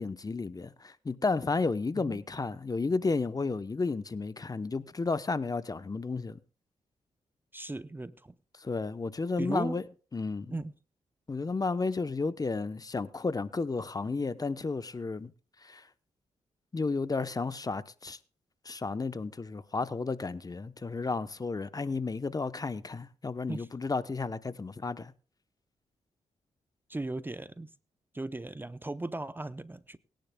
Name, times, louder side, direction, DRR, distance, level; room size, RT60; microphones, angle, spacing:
voice 1, 0.0-6.4 8.6-9.8 10.1-10.5 11.3-15.3 15.6-15.8 16.7-18.2 18.6-25.1, left 3 dB, 30° left, 0.7 m, -32 dB
voice 2, 7.5-8.3 9.4-9.8 10.5-10.7 23.5-23.7 26.9-27.7 28.1-30.0, right 2 dB, 15° right, 0.6 m, -37 dB
23.5 x 10.5 x 2.2 m
cardioid pair, 65°, 13 cm